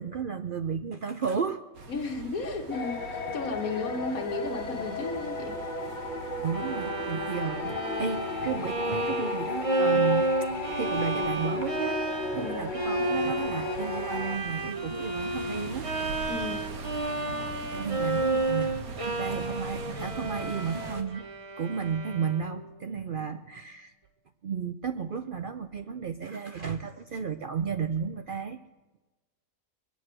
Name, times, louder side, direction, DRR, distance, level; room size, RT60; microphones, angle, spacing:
voice 1, 0.0-1.6 6.4-10.5 10.8-12.0 12.3-16.1 17.4-18.8 19.0-21.3 21.6-23.9 24.4-28.6, right 6 dB, 55° right, 8 dB, 0.6 m, -33 dB
sound 1, 1.7-21.0, right 3 dB, 90° right, 1.9 m, -43 dB
voice 2, 1.9-5.6 12.3-12.7 16.3-16.8 23.2-23.3, left 3 dB, 80° left, 4 dB, 2.0 m, -34 dB
sound 2, 2.7-14.4, left 3 dB, 35° left, 1.3 m, -35 dB
Bowed string instrument, 6.5-22.6, right 2 dB, 25° right, 1.0 m, -31 dB
22.5 x 8.1 x 7.7 m, 1.2 s
omnidirectional pair, 1.5 m